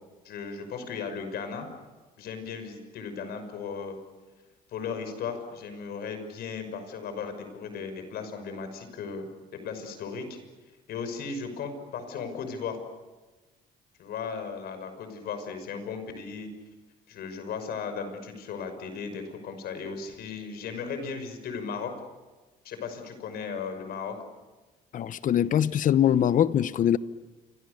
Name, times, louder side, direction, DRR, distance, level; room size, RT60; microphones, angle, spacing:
voice 1, 0.2-1.7 2.2-4.0 4.7-9.3 9.6-10.4 10.9-12.8 14.0-16.5 17.1-21.9 22.6-24.2, left 5 dB, 70° left, 5.9 m, -36 dB
voice 2, 24.9-27.0, left 10 dB, 50° left, 0.9 m, -23 dB
29.0 x 25.5 x 6.8 m
cardioid pair, 110°, 17 cm